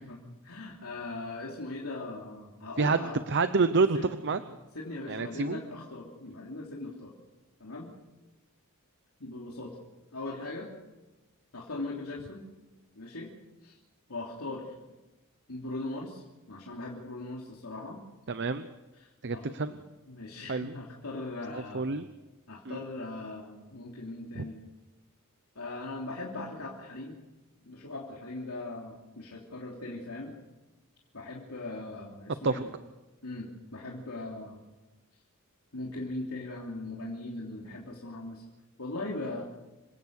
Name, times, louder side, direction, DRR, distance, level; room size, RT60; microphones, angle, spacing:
voice 1, 0.0-3.2 3.9-4.1 4.7-7.1 7.6-7.9 9.2-9.8 10.1-10.7 11.5-12.4 12.9-13.3 13.6-13.8 14.1-14.7 15.5-18.0 18.9-19.8 20.1-21.9 22.5-24.6 25.5-27.2 27.6-30.3 31.1-32.7 33.2-34.6 35.7-38.4 38.8-39.4, left 2 dB, 85° left, -3 dB, 3.1 m, -39 dB
voice 2, 2.8-4.4 5.1-5.6 18.3-18.7 19.2-19.7 20.5-20.7 21.5-22.1 22.7-22.8 24.4-24.5 32.4-32.6, right 4 dB, 55° right, 11 dB, 0.8 m, -28 dB
27.5 x 16.5 x 6.5 m, 1.1 s
head